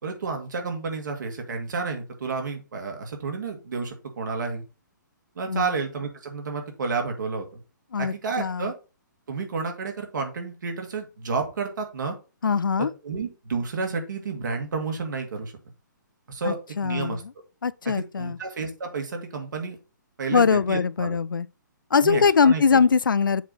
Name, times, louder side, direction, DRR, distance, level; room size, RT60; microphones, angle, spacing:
voice 1, 0.0-4.6 5.4-7.6 8.0-8.7 9.3-12.1 12.8-15.5 16.3-17.2 17.8-19.8 20.2-21.2 22.0-22.8, right 4 dB, 65° right, 2.1 m, -31 dB
voice 2, 7.9-8.7 12.4-12.9 16.4-17.2 17.6-18.4 20.3-21.5 21.9-23.4, left 5 dB, 90° left, 0.4 m, -22 dB
7.2 x 3.7 x 4.2 m
figure-of-eight pair, 130°, 11 cm